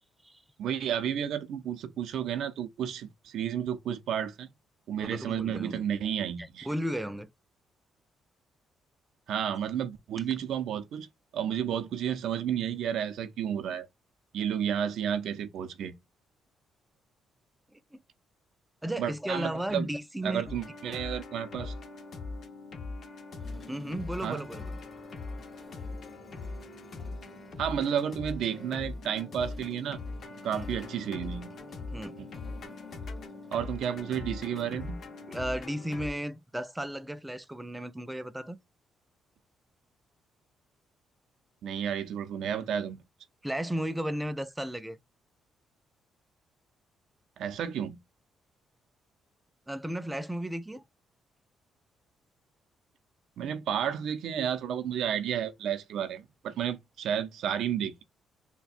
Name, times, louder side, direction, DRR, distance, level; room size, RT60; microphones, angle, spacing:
voice 1, 0.6-4.5 4.9-6.7 9.3-11.1 11.3-13.9 14.3-15.9 19.0-19.9 20.2-21.7 24.2-24.4 27.6-30.0 30.4-31.5 32.2-32.3 33.5-35.0 41.6-43.0 47.4-48.0 53.4-58.0, right 9 dB, 75° right, 0.5 m, -32 dB
voice 2, 5.0-5.8 6.4-7.3 17.7-18.0 18.8-20.5 23.7-24.8 30.5-30.7 31.9-32.2 35.3-38.6 43.4-45.0 49.7-50.8, right 1 dB, 10° right, 0.3 m, -34 dB
sound 1, 20.4-36.1, left 3 dB, 55° left, 0.9 m, -41 dB
sound 2, 23.4-35.7, left 5 dB, 30° left, 1.2 m, -53 dB
4.1 x 2.2 x 2.5 m
cardioid pair, 90°, 0 cm